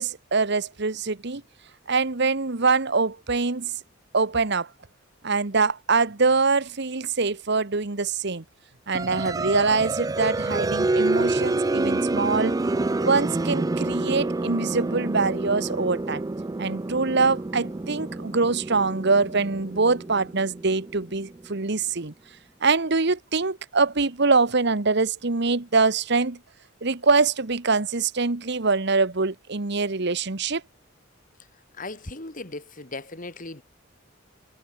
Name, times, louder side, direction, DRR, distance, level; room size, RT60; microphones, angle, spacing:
voice 1, 0.0-1.4 1.9-3.7 4.1-4.7 5.2-8.4 8.9-12.6 13.0-16.2 16.6-22.1 22.6-26.4 26.8-30.6, right 4 dB, 55° right, 1.3 m, -24 dB
sound 1, 8.9-21.5, right 2 dB, 20° right, 0.4 m, -28 dB
voice 2, 31.8-33.6, left 2 dB, 40° left, 2.8 m, -37 dB
head